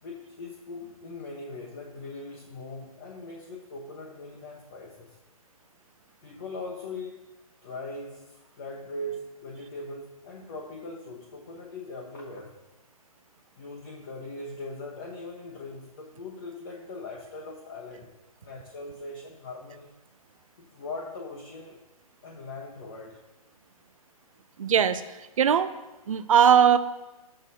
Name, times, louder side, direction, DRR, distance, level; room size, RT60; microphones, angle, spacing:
voice 1, 0.0-5.2 6.2-7.3 7.6-12.6 13.6-18.1 18.4-19.9 20.6-21.8 22.2-23.2, left 2 dB, 35° left, -2 dB, 1.1 m, -40 dB
voice 2, 24.6-25.0 25.4-25.7 26.1-26.8, right 8 dB, 60° right, 13 dB, 0.6 m, -19 dB
12.5 x 7.7 x 2.8 m, 1.1 s
hypercardioid pair, 170°, 19 cm